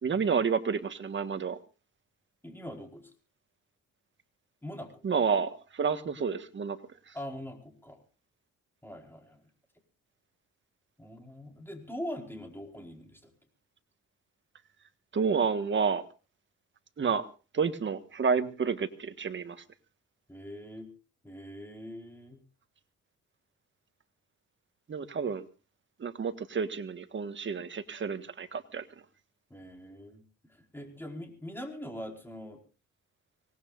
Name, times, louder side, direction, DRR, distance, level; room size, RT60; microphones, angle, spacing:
voice 1, 0.0-1.6 5.0-6.8 7.1-7.2 15.1-16.0 17.0-17.3 17.5-19.6 24.9-25.5 26.0-28.9, right 6 dB, 40° right, 9 dB, 1.6 m, -30 dB
voice 2, 2.4-3.1 4.6-5.0 7.1-8.0 8.8-9.4 11.0-13.3 20.3-20.9 21.2-22.4 29.5-30.2 30.7-32.6, equal, 5° left, 2 dB, 4.8 m, -42 dB
25.5 x 18.5 x 2.6 m, 0.33 s
cardioid pair, 90°, 30 cm